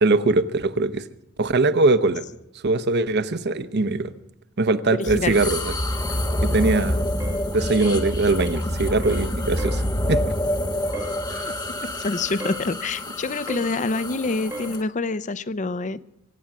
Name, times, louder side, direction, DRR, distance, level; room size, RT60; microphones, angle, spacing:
voice 1, 0.0-1.0 1.4-2.2 2.6-4.1 4.6-5.7 6.4-7.0 7.5-10.3 11.3-11.5, right 3 dB, 50° right, 0.9 m, -21 dB
voice 2, 4.9-5.4 6.1-6.2 11.5-11.6 11.8-16.0, left 3 dB, 35° left, 0.6 m, -27 dB
sound 1, 5.0-14.8, left 1 dB, 20° left, 1.2 m, -27 dB
sound 2, 7.2-7.4 7.8-8.1 8.4-8.6 9.0-9.3 9.6-9.8 10.9-11.2 12.4-12.7 13.5-13.7 14.5-14.8, equal, 15° right, 0.9 m, -35 dB
24.0 x 8.8 x 6.0 m
head